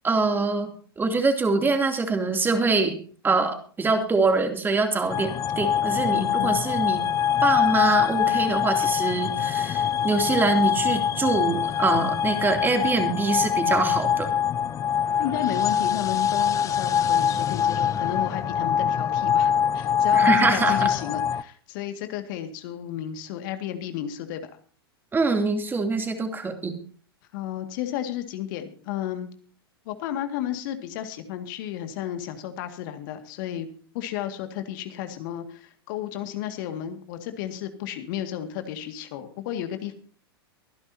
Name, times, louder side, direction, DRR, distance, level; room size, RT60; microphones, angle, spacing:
voice 1, 0.0-2.9 3.2-7.0 7.4-14.3 20.1-20.9 25.1-26.7, right 3 dB, 15° right, 5 dB, 2.9 m, -24 dB
sound 1, 5.1-21.4, left 8 dB, 25° left, 0.6 m, -24 dB
voice 2, 6.1-6.6 15.2-24.5 27.3-29.3 29.9-33.7 33.9-39.9, left 11 dB, 55° left, 8 dB, 2.0 m, -33 dB
24.0 x 11.0 x 2.8 m, 0.42 s
hypercardioid pair, 105°, 13 cm